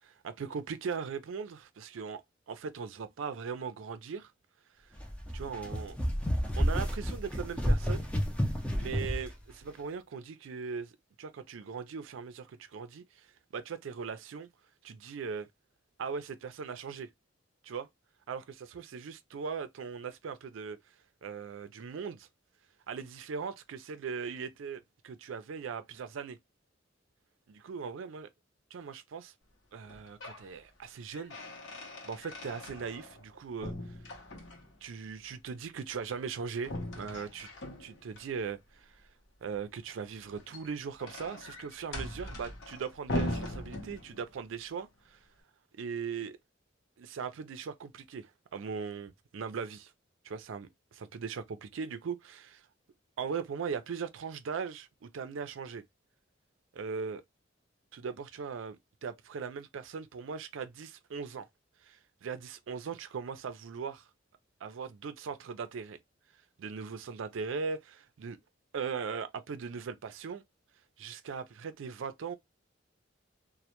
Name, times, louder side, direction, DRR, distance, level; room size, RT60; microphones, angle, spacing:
voice 1, 0.0-2.2 2.5-4.3 5.3-6.0 6.6-8.1 8.8-10.9 11.2-14.5 14.8-15.5 16.0-17.1 17.6-17.9 18.3-20.8 21.2-22.3 22.9-26.4 27.5-28.3 28.7-29.3 29.7-31.4 32.0-34.0 34.8-37.5 37.8-39.0 39.4-45.2 45.8-46.4 47.0-49.9 50.2-52.7 53.2-55.8 56.7-57.2 57.9-58.8 59.0-61.5 61.8-64.1 64.6-66.0 66.6-68.4 68.7-70.4 71.0-72.4, right 6 dB, 85° right, 0.4 m, -39 dB
sound 1, 5.0-9.3, equal, 5° left, 0.4 m, -30 dB
sound 2, 29.8-30.5 30.8-33.3 33.6-34.8 36.6-38.2 40.2-44.4, left 1 dB, 70° left, 0.7 m, -40 dB
2.1 x 2.1 x 2.8 m
head